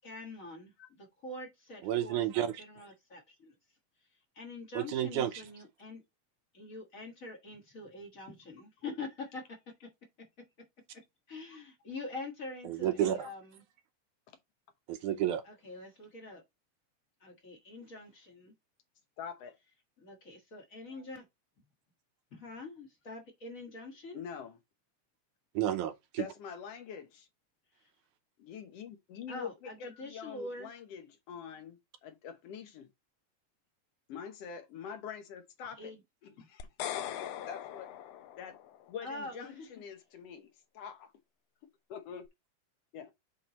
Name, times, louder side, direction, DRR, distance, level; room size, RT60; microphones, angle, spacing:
voice 1, 0.0-3.6 4.3-6.0 6.5-9.6 10.9-11.0 11.3-13.6 15.4-16.4 17.2-18.5 20.0-21.2 22.3-24.2 27.8-27.9 29.3-30.7 35.8-36.0 36.4-36.5 39.0-39.7, left 2 dB, 40° left, 1.3 m, -45 dB
voice 2, 1.8-2.6 4.8-5.3 12.7-13.3 14.9-15.4 25.6-26.2, right 11 dB, 80° right, 2.1 m, -31 dB
voice 3, 19.2-19.6 24.1-24.6 26.2-27.3 28.4-32.9 34.1-35.9 36.2-36.7 36.9-37.9 38.4-38.6 38.9-41.1 41.9-42.3 42.9-43.1, left 7 dB, 65° left, 1.8 m, -45 dB
sound 1, 36.6-38.9, left 11 dB, 80° left, 1.4 m, -40 dB
7.6 x 3.8 x 4.1 m
omnidirectional pair, 3.6 m